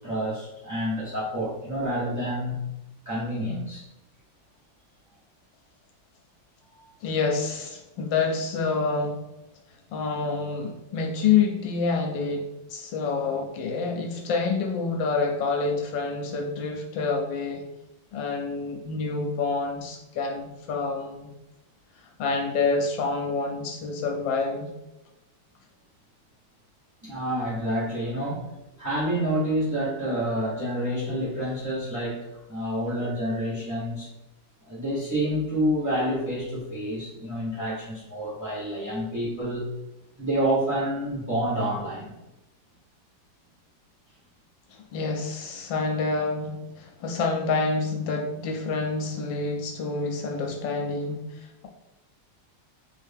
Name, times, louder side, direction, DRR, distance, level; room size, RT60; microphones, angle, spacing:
voice 1, 0.0-2.7 3.0-3.8 6.7-6.9 27.0-28.4 28.8-32.2 32.5-34.1 34.7-39.7 40.2-42.1, equal, 10° right, -8 dB, 1.0 m, -28 dB
voice 2, 7.0-9.2 9.9-17.6 18.1-21.3 22.2-24.7 44.7-51.7, left 4 dB, 80° left, 2 dB, 1.2 m, -27 dB
3.3 x 2.7 x 3.4 m, 0.96 s
omnidirectional pair, 2.1 m